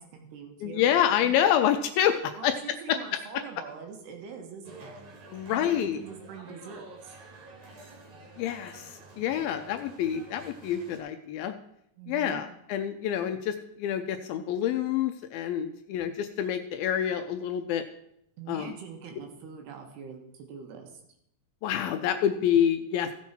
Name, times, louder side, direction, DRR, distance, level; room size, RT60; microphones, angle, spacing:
voice 1, 0.0-0.9 1.2-1.4 2.4-5.0 5.5-7.2 12.0-12.4 18.4-21.0, right 6 dB, 85° right, 3 dB, 3.6 m, -43 dB
voice 2, 0.6-2.6 2.9-3.4 5.3-6.0 8.4-11.5 12.1-17.8 18.5-18.7 21.6-23.2, left 10 dB, 80° left, 7 dB, 2.2 m, -27 dB
sound 1, 4.6-11.0, right 2 dB, 65° right, 3.6 m, -49 dB
15.0 x 7.3 x 4.5 m, 0.76 s
omnidirectional pair, 4.6 m